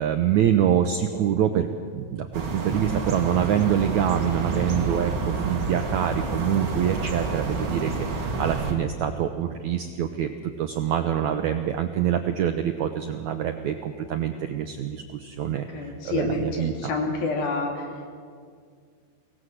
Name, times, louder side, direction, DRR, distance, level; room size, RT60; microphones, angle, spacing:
voice 1, 0.0-1.7 1.9-7.9 8.2-10.3 10.6-16.7, right 9 dB, 80° right, 7 dB, 1.7 m, -25 dB
sound 1, 2.3-8.7, right 3 dB, 40° right, 2.5 m, -29 dB
voice 2, 15.4-18.1, left 3 dB, 70° left, 2 dB, 4.7 m, -29 dB
24.0 x 18.5 x 7.9 m, 2.1 s
omnidirectional pair, 4.4 m